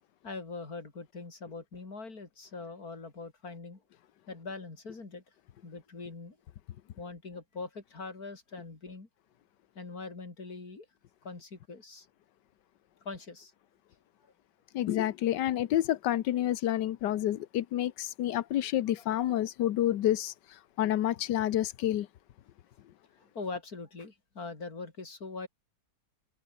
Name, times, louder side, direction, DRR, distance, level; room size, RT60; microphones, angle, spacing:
voice 1, 0.2-3.8 4.3-5.2 5.6-6.4 7.0-9.1 9.8-10.9 11.2-12.1 13.0-13.5 18.9-19.0 23.2-25.5, left 3 dB, 50° left, 4.4 m, -42 dB
voice 2, 14.7-22.1, left 12 dB, 70° left, 1.4 m, -29 dB
omnidirectional pair, 2.0 m